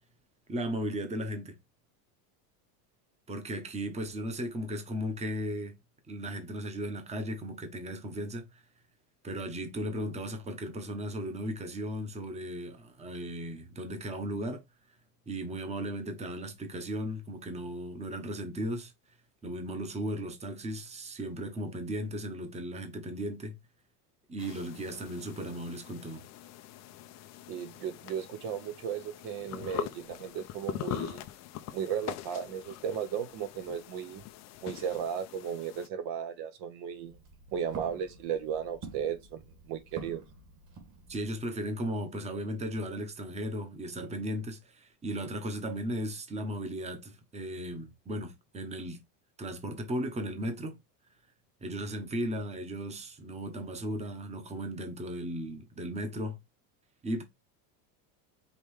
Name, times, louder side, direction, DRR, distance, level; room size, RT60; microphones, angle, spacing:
voice 1, 0.5-1.6 3.3-5.8 6.1-8.6 9.2-14.6 15.3-18.9 19.4-23.6 24.3-26.2 41.1-49.0 49.4-50.8 51.6-56.4 57.0-57.2, equal, 15° right, 0.9 m, -36 dB
sound 1, 24.4-35.9, left 13 dB, 35° left, 0.5 m, -43 dB
voice 2, 27.5-31.2 31.7-34.2 34.6-37.2 37.5-40.2, right 8 dB, 55° right, 0.8 m, -35 dB
Walk footsteps, 36.9-41.4, right 4 dB, 40° right, 2.1 m, -48 dB
5.3 x 3.1 x 3.2 m
supercardioid pair, 135°, 49 cm